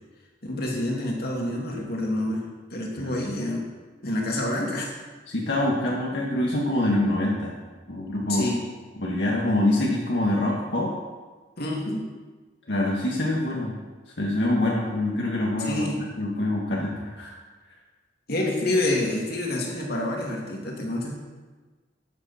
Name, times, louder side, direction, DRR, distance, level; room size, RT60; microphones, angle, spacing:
voice 1, 0.4-2.4 2.7-3.6 4.0-5.0 8.3-8.6 11.6-12.1 15.6-16.0 18.3-21.2, left 1 dB, 60° left, -1 dB, 2.6 m, -27 dB
voice 2, 5.3-7.6 7.9-8.5 9.0-10.9 12.7-13.8 14.2-15.9 16.2-17.4, left 1 dB, 75° left, -3 dB, 1.8 m, -25 dB
13.0 x 10.0 x 4.4 m, 1.3 s
head